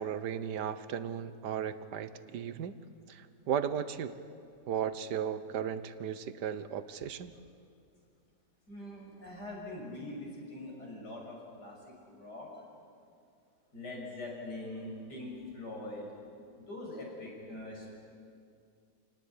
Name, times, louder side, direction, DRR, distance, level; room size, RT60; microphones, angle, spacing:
voice 1, 0.0-2.7 3.1-4.1 4.7-7.3, right 8 dB, 85° right, 13 dB, 1.6 m, -35 dB
voice 2, 8.7-11.8 12.1-12.6 13.7-16.1 16.7-18.0, left 2 dB, 80° left, -2 dB, 7.2 m, -43 dB
27.5 x 18.5 x 10.0 m, 2.4 s
omnidirectional pair, 1.8 m